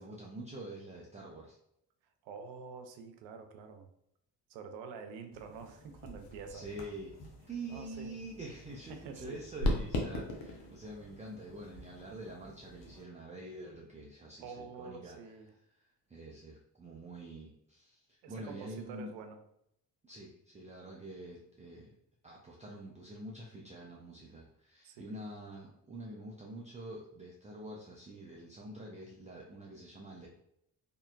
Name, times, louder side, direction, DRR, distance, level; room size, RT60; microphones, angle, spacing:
voice 1, 0.0-1.6 6.5-7.2 7.5-15.2 16.1-19.1 20.0-21.9 22.2-30.3, right 1 dB, 15° right, -3 dB, 0.4 m, -46 dB
voice 2, 2.2-3.9 4.5-6.7 7.7-8.3 8.9-9.4 14.4-15.5 18.2-19.4 24.8-25.2, right 5 dB, 70° right, 7 dB, 0.5 m, -47 dB
sound 1, 5.3-13.0, left 1 dB, 65° left, 0.7 m, -40 dB
2.5 x 2.2 x 2.2 m, 0.75 s
hypercardioid pair, 45°, 47 cm